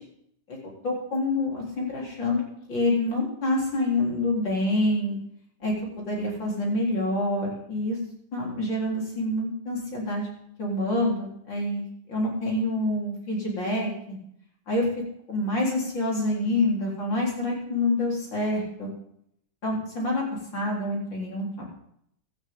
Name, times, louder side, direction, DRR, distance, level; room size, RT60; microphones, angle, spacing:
voice 1, 0.8-2.4 2.7-5.2 5.6-5.7 6.1-8.0 8.3-10.3 10.6-14.2 14.7-14.8 15.3-18.9 19.6-20.2 20.5-21.6, left 1 dB, 60° left, -3 dB, 4.6 m, -27 dB
17.0 x 12.5 x 3.8 m, 0.71 s
omnidirectional pair, 2.4 m